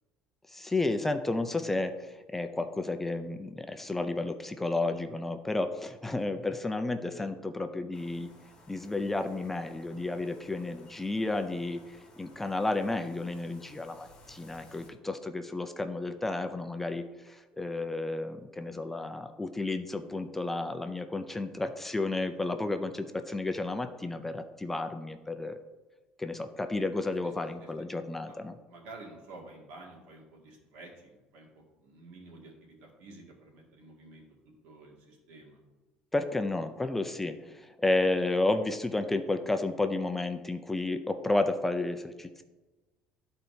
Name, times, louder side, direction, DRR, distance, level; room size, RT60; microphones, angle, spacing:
voice 1, 0.5-8.3 8.7-25.6 26.2-28.5 36.1-42.4, left 2 dB, 10° left, 7 dB, 0.4 m, -32 dB
sound 1, 7.9-14.9, left 2 dB, 25° left, 1.6 m, -57 dB
voice 2, 28.7-34.3 34.6-35.6, right 2 dB, 80° right, -1 dB, 1.9 m, -50 dB
13.0 x 4.4 x 2.7 m, 1.2 s
cardioid pair, 135°, 3 cm